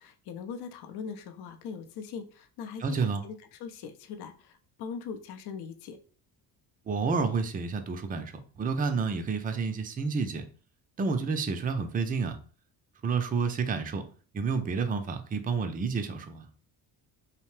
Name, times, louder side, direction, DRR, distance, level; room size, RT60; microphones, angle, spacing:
voice 1, 0.0-3.0 3.2-6.0, left 6 dB, 60° left, 8 dB, 0.6 m, -41 dB
voice 2, 2.8-3.2 6.9-8.3 8.6-10.4 11.0-12.4 13.0-14.0 14.3-16.5, right 5 dB, 20° right, 7 dB, 0.4 m, -29 dB
2.8 x 2.1 x 3.0 m, 0.41 s
supercardioid pair, 65°, 45 cm